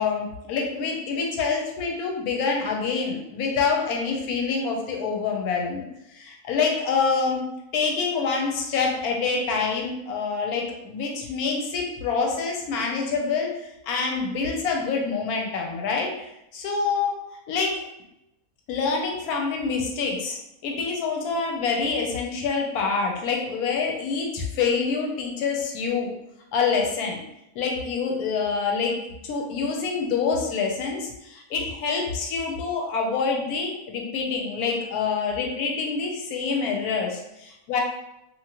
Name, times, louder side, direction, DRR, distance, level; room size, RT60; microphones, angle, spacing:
voice 1, 0.0-5.9 6.1-17.2 17.5-17.8 18.7-26.1 26.5-27.2 27.5-28.9 29.2-37.8, left 5 dB, 90° left, 1 dB, 1.1 m, -26 dB
2.9 x 2.5 x 2.9 m, 0.86 s
omnidirectional pair, 1.5 m